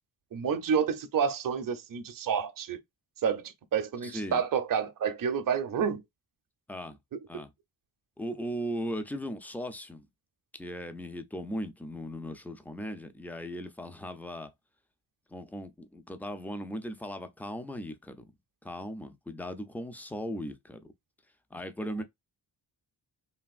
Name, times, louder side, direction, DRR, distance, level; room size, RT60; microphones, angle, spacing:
voice 1, 0.3-2.8 3.2-6.0, right 7 dB, 45° right, 0.6 m, -29 dB
voice 2, 4.0-4.4 6.7-7.0 7.3-7.5 8.2-10.1 10.5-14.5 15.3-18.3 18.6-20.9 21.5-22.0, equal, 5° left, 0.3 m, -38 dB
3.4 x 2.4 x 2.3 m
wide cardioid pair, 110°, 47 cm